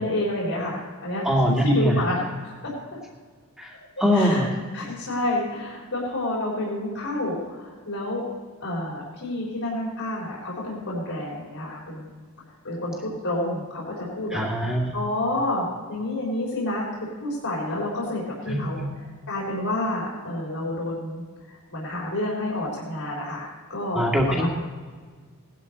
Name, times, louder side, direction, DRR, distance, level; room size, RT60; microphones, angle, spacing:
voice 1, 0.0-2.7 4.1-4.4 4.7-8.2 8.6-12.1 12.6-14.4 14.9-16.9 17.2-18.8 19.3-24.5, left 1 dB, 70° left, -6 dB, 3.8 m, -29 dB
voice 2, 1.2-1.9 3.6-3.7 4.0-4.5 14.3-14.9 18.5-18.9 23.9-24.5, equal, 5° right, -2 dB, 2.0 m, -22 dB
18.0 x 12.0 x 4.2 m, 1.5 s
head